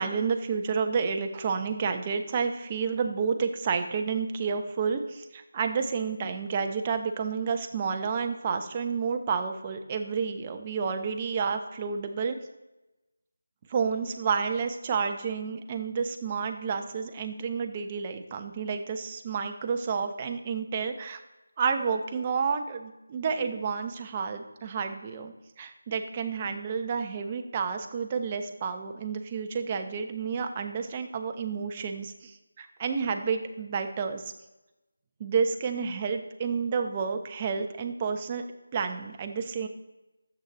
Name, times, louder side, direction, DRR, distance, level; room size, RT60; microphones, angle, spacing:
voice 1, 0.0-12.4 13.7-21.2 21.6-34.2 35.2-38.5 38.7-39.7, right 5 dB, 20° right, 6 dB, 0.9 m, -30 dB
14.0 x 8.3 x 3.0 m, 1.0 s
figure-of-eight pair, 165°, 0 cm